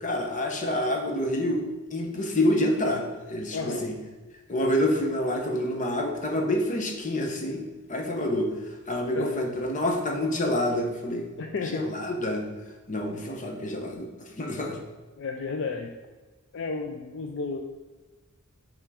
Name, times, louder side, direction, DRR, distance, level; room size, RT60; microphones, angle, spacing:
voice 1, 0.0-1.6 1.9-3.9 4.5-7.6 7.9-8.5 8.9-11.3 11.6-12.5 12.9-14.8, left 1 dB, 35° left, 3 dB, 0.9 m, -27 dB
voice 2, 3.5-3.9 9.1-9.4 11.4-11.9 15.2-15.9 16.5-17.6, left 4 dB, 55° left, 4 dB, 0.4 m, -32 dB
5.8 x 3.6 x 4.9 m, 1.2 s
head